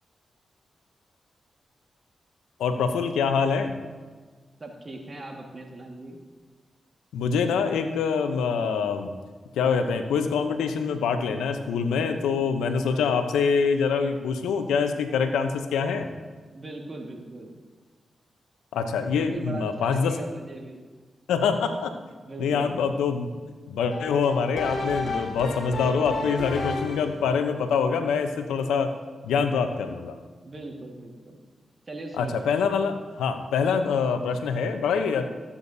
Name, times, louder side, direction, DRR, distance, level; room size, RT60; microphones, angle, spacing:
voice 1, 2.6-3.7 7.1-9.1 9.5-16.1 18.7-20.2 21.3-21.9 22.4-23.3 23.7-28.9 29.2-30.2 32.2-35.3, left 5 dB, 90° left, 8 dB, 0.7 m, -25 dB
voice 2, 4.6-6.2 12.6-13.0 16.5-17.5 19.1-20.8 22.2-22.8 30.4-31.4 31.9-32.5, right 2 dB, 45° right, 1 dB, 1.7 m, -39 dB
sound 1, 23.9-27.3, left 2 dB, 70° left, 1.6 m, -32 dB
14.5 x 8.4 x 2.7 m, 1.4 s
supercardioid pair, 40°, 0 cm